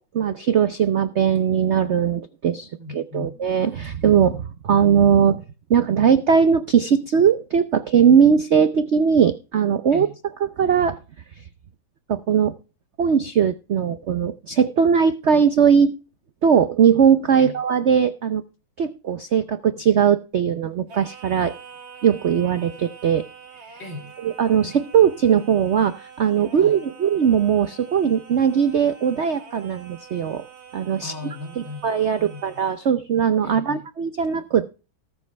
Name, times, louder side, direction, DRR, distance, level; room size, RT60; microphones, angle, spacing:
voice 1, 0.0-5.4 5.7-10.1 10.6-11.0 12.1-12.6 13.0-15.9 16.4-18.4 18.8-21.6 22.0-23.3 24.2-30.5 30.7-31.1 31.8-34.7, right 7 dB, 80° right, 0.6 m, -19 dB
voice 2, 2.8-3.5 9.9-10.1 17.4-17.6 23.8-24.1 26.5-26.8 31.0-31.8 32.2-32.4 33.4-33.8, left 2 dB, 65° left, 2.7 m, -37 dB
Singing, 20.9-33.0, right 6 dB, 35° right, 1.6 m, -45 dB
19.0 x 7.3 x 3.3 m
omnidirectional pair, 2.2 m